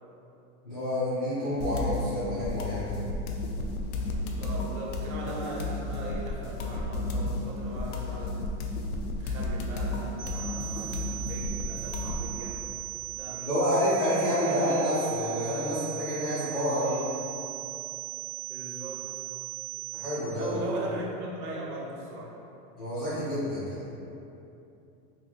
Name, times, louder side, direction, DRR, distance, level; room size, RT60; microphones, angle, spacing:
voice 1, 0.6-2.9 13.4-17.0 19.9-20.5 22.8-23.8, equal, 20° left, -15 dB, 0.3 m, -28 dB
sound 1, 1.6-12.3, left 2 dB, 75° left, 0.6 m, -33 dB
voice 2, 4.4-8.5 9.2-12.6 13.1-13.6 14.3-14.7 16.6-17.1 18.5-19.1 20.3-22.4, right 1 dB, 80° right, -3 dB, 0.9 m, -39 dB
sound 2, 10.2-20.2, right 26 dB, 35° right, 0.6 m, -38 dB
2.9 x 2.5 x 3.9 m, 2.8 s
supercardioid pair, 170°, 44 cm